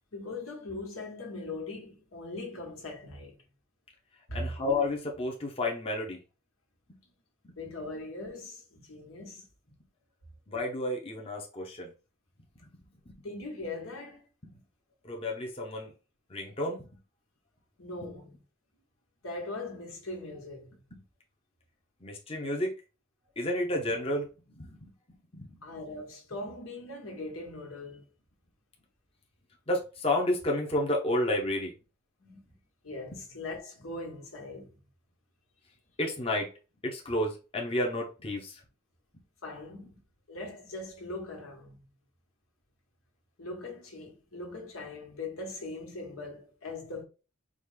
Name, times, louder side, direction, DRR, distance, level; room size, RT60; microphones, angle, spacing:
voice 1, 0.1-3.3 4.3-4.6 7.5-9.5 13.2-14.3 17.8-18.4 19.2-20.7 25.6-28.0 32.2-32.4 32.8-34.8 39.4-40.0 40.3-41.8 43.4-47.0, left 2 dB, 85° left, 1.6 m, -40 dB
voice 2, 4.3-6.2 6.9-7.0 7.4-7.6 10.5-11.9 13.1-13.2 15.0-15.9 16.3-16.9 20.9-21.0 22.0-22.8 23.4-25.6 29.7-31.7 33.1-33.2 36.0-36.5 36.8-38.6, left 1 dB, 25° left, 0.8 m, -31 dB
4.9 x 2.5 x 3.7 m
head